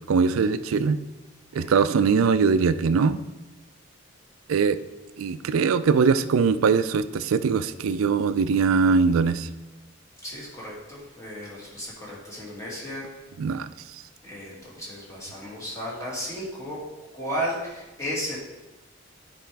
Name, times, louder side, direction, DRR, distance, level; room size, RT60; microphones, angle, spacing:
voice 1, 0.1-1.0 1.5-3.2 4.5-4.8 5.2-9.5 13.4-13.7, right 5 dB, 85° right, 13 dB, 0.4 m, -21 dB
voice 2, 10.2-13.1 14.2-16.8 17.1-18.4, equal, 15° left, -5 dB, 2.0 m, -34 dB
10.0 x 4.9 x 3.4 m, 1.1 s
head